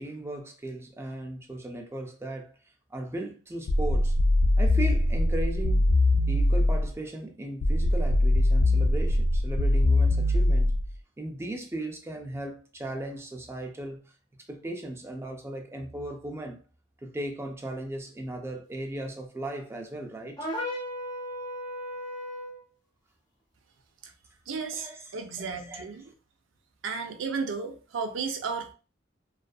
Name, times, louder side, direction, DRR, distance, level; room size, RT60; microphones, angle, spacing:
voice 1, 0.0-2.5 2.9-4.2 4.6-5.9 6.3-10.8 11.2-14.1 14.5-16.6 17.0-20.5 24.7-26.1, right 1 dB, 15° right, 0.4 m, -37 dB
sound 1, 3.7-6.9 7.6-10.9, left 1 dB, 70° left, 0.4 m, -22 dB
sound 2, 20.4-22.6, equal, 20° left, 0.7 m, -35 dB
voice 2, 24.5-26.0 26.8-28.7, right 5 dB, 90° right, 0.5 m, -33 dB
2.5 x 2.3 x 2.3 m
head